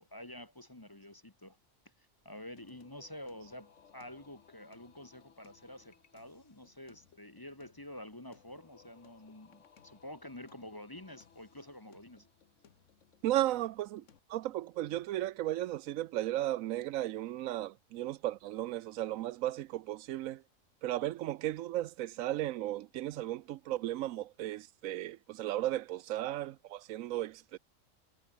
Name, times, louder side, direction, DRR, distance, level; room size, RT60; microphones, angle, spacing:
voice 1, 0.0-1.6 2.0-12.3, left 1 dB, 15° left, 1.1 m, -49 dB
Singing, 2.6-14.2, left 7 dB, 65° left, 1.6 m, -63 dB
voice 2, 13.2-14.0 14.3-20.4 20.8-27.6, right 14 dB, 80° right, 1.0 m, -35 dB
omnidirectional pair, 1.4 m